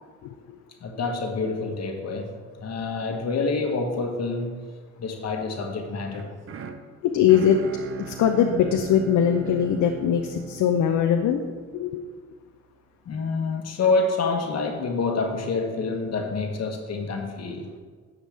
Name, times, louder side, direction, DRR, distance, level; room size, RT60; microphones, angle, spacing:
voice 1, 0.2-0.6 7.0-7.6 8.0-11.4 11.7-12.0, left 8 dB, 75° left, 5 dB, 0.7 m, -21 dB
voice 2, 0.8-4.7 5.0-6.3 13.0-17.7, left 3 dB, 60° left, 3 dB, 1.4 m, -27 dB
sound 1, 6.1-12.2, right 9 dB, 45° right, 0.7 m, -40 dB
11.5 x 7.3 x 3.5 m, 1.5 s
cardioid pair, 90°, 30 cm